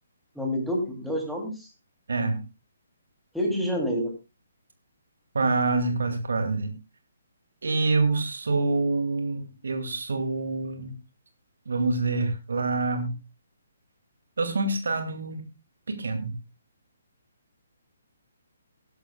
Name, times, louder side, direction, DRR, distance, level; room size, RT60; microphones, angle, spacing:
voice 1, 0.3-1.7 3.3-4.1, equal, ahead, 0 dB, 3.0 m, -28 dB
voice 2, 2.1-2.4 5.3-6.7 7.6-10.9 11.7-13.1 14.4-15.5 15.9-16.3, right 3 dB, 60° right, 6 dB, 2.3 m, -26 dB
20.5 x 11.0 x 2.3 m, 0.27 s
figure-of-eight pair, 135°, 0 cm